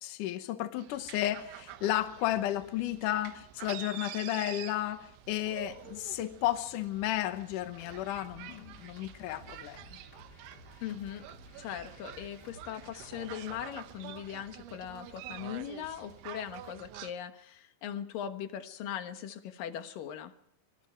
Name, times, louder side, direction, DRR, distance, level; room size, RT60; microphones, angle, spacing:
voice 1, 0.0-9.8, left 13 dB, 80° left, 1.8 m, -33 dB
sound 1, 0.8-17.1, right 13 dB, 85° right, 3.4 m, -48 dB
sound 2, 5.4-16.7, right 2 dB, 40° right, 5.9 m, -62 dB
sound 3, 7.8-13.6, left 2 dB, 25° left, 2.5 m, -55 dB
voice 2, 10.8-11.2 11.6-20.3, left 10 dB, 65° left, 2.5 m, -40 dB
24.5 x 23.5 x 4.5 m
omnidirectional pair, 5.3 m